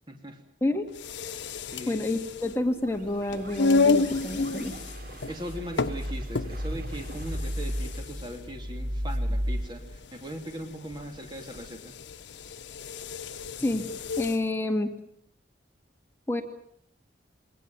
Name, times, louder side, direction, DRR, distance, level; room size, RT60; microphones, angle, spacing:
voice 1, 0.1-0.4 1.7-2.0 5.3-12.0, equal, 25° right, 4 dB, 2.9 m, -39 dB
sound 1, 0.9-14.5, left 3 dB, 75° left, 0.9 m, -31 dB
voice 2, 1.9-4.7 13.6-13.9 14.2-14.9 16.3-16.4, left 1 dB, 15° left, 4 dB, 2.0 m, -28 dB
sound 2, 2.7-9.6, equal, 50° right, 3.6 m, -34 dB
23.5 x 19.5 x 9.5 m, 0.69 s
head